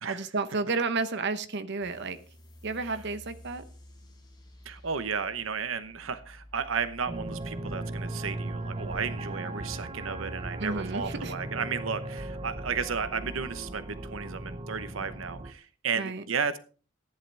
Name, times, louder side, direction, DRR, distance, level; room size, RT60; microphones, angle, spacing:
voice 1, 0.0-2.2 2.6-3.6 10.6-11.3 15.9-16.2, right 3 dB, 60° right, 10 dB, 1.0 m, -31 dB
sound 1, 1.8-8.9, equal, 20° left, 4.8 m, -52 dB
voice 2, 4.6-16.6, right 6 dB, 85° right, 11 dB, 0.9 m, -33 dB
sound 2, 7.1-15.5, right 1 dB, 30° right, 0.7 m, -37 dB
15.0 x 10.5 x 3.4 m, 0.37 s
head